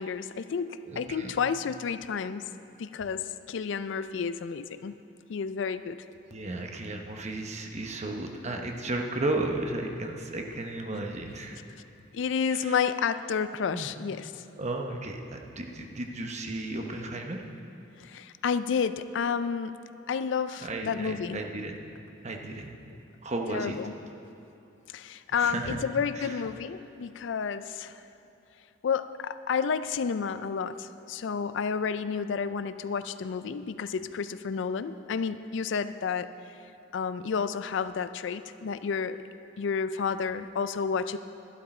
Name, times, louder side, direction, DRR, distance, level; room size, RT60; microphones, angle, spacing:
voice 1, 0.0-2.4 2.8-4.9 5.3-6.0 12.1-14.3 18.0-19.7 20.1-21.4 23.5-23.9 24.9-27.9 28.8-36.3 36.9-39.2 39.6-41.2, left 6 dB, 65° left, 13 dB, 0.4 m, -30 dB
voice 2, 0.8-1.4 6.3-11.6 12.5-12.8 13.7-13.9 14.6-17.4 20.6-21.8 22.2-22.8 23.2-23.8 25.3-25.8 26.1-26.4, right 2 dB, 35° right, 3 dB, 1.0 m, -34 dB
12.0 x 11.5 x 4.4 m, 2.9 s
head